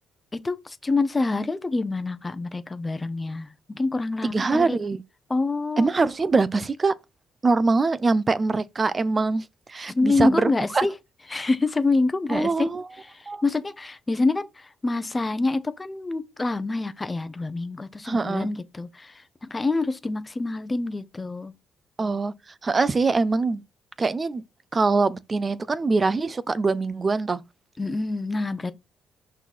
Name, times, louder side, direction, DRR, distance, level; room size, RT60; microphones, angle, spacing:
voice 1, 0.3-4.8 5.3-5.9 9.9-10.9 11.3-12.7 13.0-19.2 19.5-21.5 27.8-28.7, left 3 dB, 20° left, 0.9 m, -26 dB
voice 2, 4.2-5.0 5.8-6.9 7.4-10.9 12.3-12.8 13.3-13.4 18.0-18.5 22.0-22.3 22.6-23.6 24.0-24.4 24.7-27.4, right 3 dB, 30° right, 0.6 m, -23 dB
5.9 x 4.1 x 4.3 m
cardioid pair, 90°, 0 cm